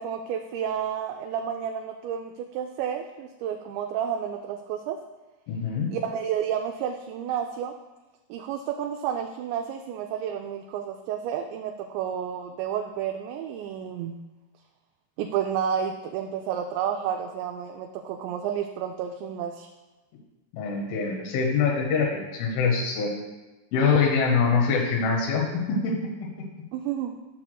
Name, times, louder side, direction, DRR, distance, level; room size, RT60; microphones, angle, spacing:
voice 1, 0.0-5.0 5.9-7.7 8.3-14.1 15.2-19.7 26.7-27.1, right 8 dB, 85° right, 3 dB, 2.6 m, -31 dB
voice 2, 5.5-5.9 20.5-23.1 23.7-26.5, left 5 dB, 85° left, -1 dB, 3.5 m, -24 dB
13.5 x 6.3 x 2.3 m, 1.1 s
omnidirectional pair, 5.4 m